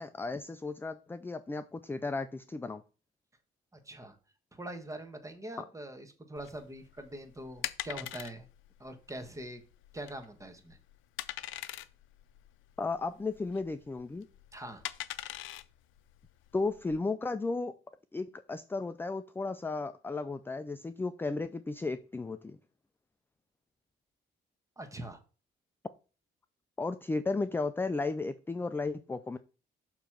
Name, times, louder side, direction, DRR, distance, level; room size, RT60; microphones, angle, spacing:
voice 1, 0.0-2.8 12.8-14.3 16.5-17.7 18.1-22.6 26.8-29.4, left 3 dB, 10° left, 11 dB, 0.4 m, -34 dB
voice 2, 3.8-4.2 4.5-8.5 8.8-9.6 9.9-10.8 14.5-14.8 24.8-25.2, right 1 dB, 15° right, 7 dB, 1.2 m, -43 dB
sound 1, 6.4-17.0, left 14 dB, 85° left, 0.4 m, -43 dB
6.7 x 3.1 x 5.8 m, 0.35 s
cardioid pair, 90°, 20 cm